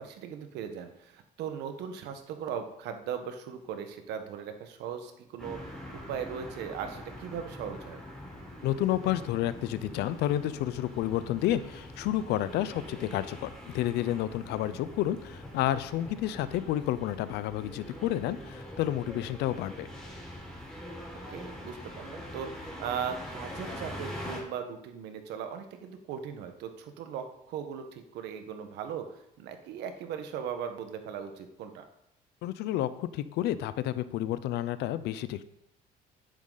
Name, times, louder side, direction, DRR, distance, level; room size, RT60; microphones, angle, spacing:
voice 1, 0.0-8.0 21.3-31.8, right 7 dB, 85° right, 7 dB, 1.4 m, -38 dB
sound 1, 5.4-24.4, left 1 dB, 5° left, 5.4 m, -44 dB
voice 2, 8.6-19.9 32.4-35.4, left 13 dB, 85° left, 15 dB, 0.7 m, -30 dB
11.0 x 10.0 x 4.1 m, 0.78 s
cardioid pair, 110°, 17 cm